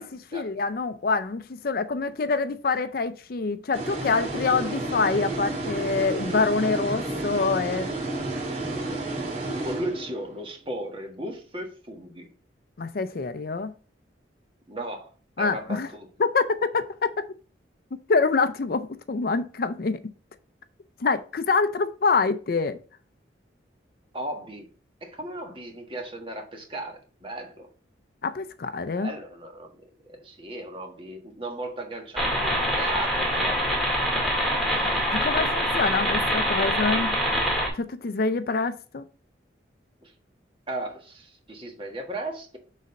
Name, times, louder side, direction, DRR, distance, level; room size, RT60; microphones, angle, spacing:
voice 1, 0.0-7.9 12.8-13.7 15.4-15.9 16.2-17.3 18.1-20.0 21.0-22.8 28.2-29.1 35.1-37.2 37.7-39.0, left 4 dB, 50° left, 0.5 m, -26 dB
sound 1, 3.7-10.4, right 2 dB, 45° right, 2.1 m, -31 dB
voice 2, 9.6-12.3 14.7-15.1 15.4-16.1 24.1-24.7 25.0-27.7 28.9-33.8 34.2-34.3 34.7-35.0 40.0-40.1 40.7-42.6, right 1 dB, 30° right, 1.4 m, -36 dB
sound 2, 32.2-37.7, equal, ahead, 1.9 m, -25 dB
6.4 x 4.1 x 5.3 m
head